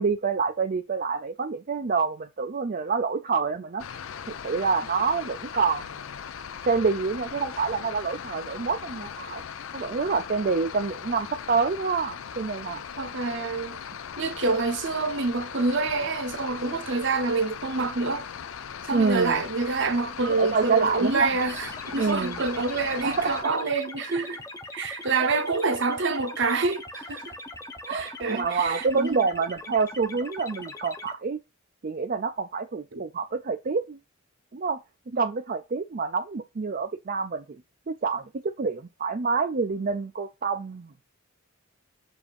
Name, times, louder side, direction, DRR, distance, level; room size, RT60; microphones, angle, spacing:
voice 1, 0.0-3.8 4.4-5.9 6.7-9.4 9.7-12.8 18.9-19.4 20.3-21.3 22.0-22.4 23.0-23.5 25.2-25.4 27.8-31.4 31.8-34.0 34.5-34.8 35.2-37.4 37.9-40.9, right 5 dB, 45° right, 0.5 m, -27 dB
sound 1, 3.8-23.4, left 7 dB, 70° left, 0.5 m, -39 dB
voice 2, 13.0-13.8 14.2-18.3 18.8-24.4 24.7-27.3 27.9-29.2 32.9-33.0, right 3 dB, 60° right, 0.9 m, -27 dB
sound 2, 21.3-31.1, left 2 dB, 15° left, 0.7 m, -41 dB
6.9 x 2.7 x 5.3 m
head